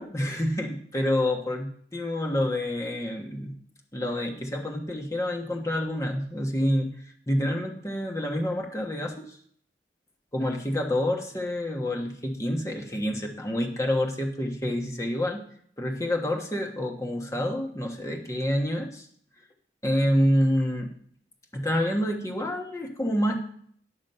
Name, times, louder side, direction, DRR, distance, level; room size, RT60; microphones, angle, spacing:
voice 1, 0.0-3.6 3.9-9.4 10.3-15.4 15.8-19.1 19.8-20.9 21.5-23.4, left 1 dB, 15° left, 1 dB, 1.3 m, -28 dB
10.5 x 6.2 x 5.5 m, 0.62 s
head